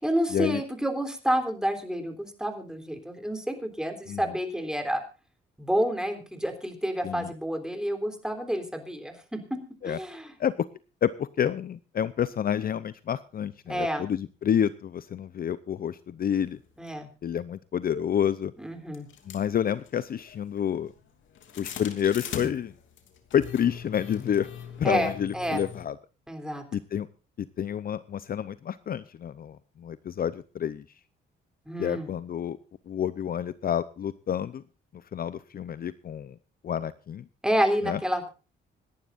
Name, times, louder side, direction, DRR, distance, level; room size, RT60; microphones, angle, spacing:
voice 1, 0.0-5.0 5.6-9.6 9.9-10.3 13.7-14.1 16.8-17.1 18.6-19.1 24.8-25.6 26.3-26.6 31.7-32.1 37.4-38.3, equal, 5° right, 6 dB, 3.5 m, -29 dB
voice 2, 11.0-16.6 17.2-18.5 19.3-20.9 21.6-22.7 23.3-24.5 24.8-25.9 26.7-27.1 27.6-30.8 31.8-32.6 32.9-34.6 35.1-36.3 36.6-37.2 37.8-38.0, left 9 dB, 50° left, 16 dB, 0.7 m, -29 dB
sound 1, 16.9-17.0 17.9-18.0 18.9-25.9, left 8 dB, 75° left, 2.8 m, -41 dB
26.5 x 11.0 x 2.5 m, 0.31 s
cardioid pair, 90°, 20 cm